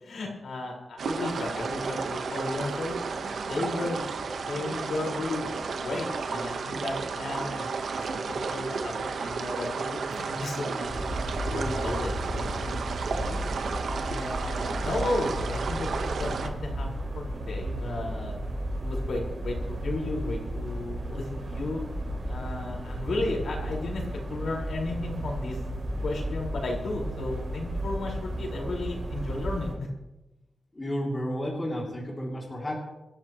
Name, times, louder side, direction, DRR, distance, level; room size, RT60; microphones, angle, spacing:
voice 1, 0.0-2.9 3.4-4.1 4.5-7.7 7.9-10.9 11.2-12.8 13.0-13.4 14.0-16.9 17.1-18.3 18.8-21.8 22.3-24.0 24.3-25.6 26.0-29.9, left 2 dB, 70° left, -2 dB, 5.1 m, -34 dB
sound 1, 1.0-16.5, right 4 dB, 75° right, 1.2 m, -32 dB
sound 2, 10.8-29.7, right 1 dB, 45° right, 3.4 m, -34 dB
voice 2, 30.7-32.7, equal, 20° left, -3 dB, 3.0 m, -32 dB
25.5 x 13.5 x 3.2 m, 1.0 s
wide cardioid pair, 170°, 0 cm